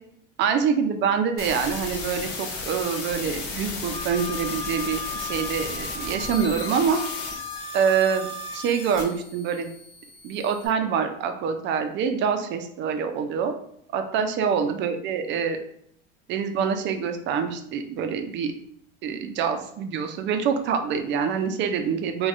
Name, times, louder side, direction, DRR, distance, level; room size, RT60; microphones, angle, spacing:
voice 1, 0.4-7.0 7.7-8.3 8.5-9.7 10.2-13.5 13.9-15.6 16.3-18.5 19.0-22.3, right 6 dB, 40° right, 7 dB, 0.4 m, -25 dB
sound 1, 1.4-10.7, left 4 dB, 75° left, 0.8 m, -35 dB
Wind instrument woodwind instrument, 3.9-8.6, left 3 dB, 10° left, 1.2 m, -36 dB
3.3 x 2.2 x 2.5 m, 0.69 s
supercardioid pair, 115°, 29 cm